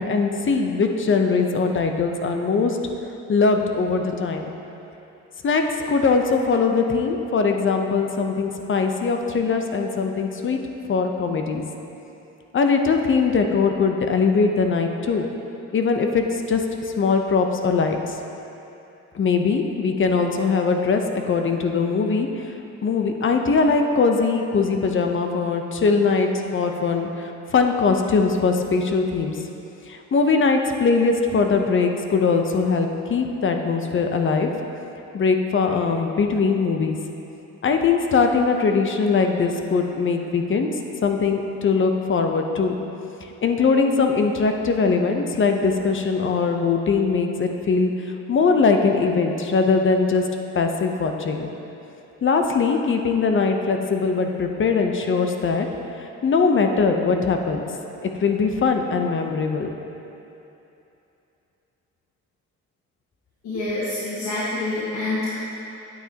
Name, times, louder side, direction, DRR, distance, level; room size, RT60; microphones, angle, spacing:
voice 1, 0.0-2.8 3.3-4.5 5.4-10.6 10.9-11.7 12.5-15.3 15.7-16.6 17.0-18.0 19.1-22.5 22.8-29.3 29.9-34.5 35.1-37.0 37.6-40.7 41.0-42.7 43.2-47.9 48.3-50.3 50.5-51.5 52.2-55.7 56.2-57.6 58.0-59.7, left 4 dB, 40° left, 4 dB, 0.8 m, -21 dB
voice 2, 63.4-65.4, left 2 dB, 70° left, -8 dB, 1.7 m, -27 dB
10.0 x 8.8 x 2.9 m, 2.9 s
cardioid pair, 90°, 30 cm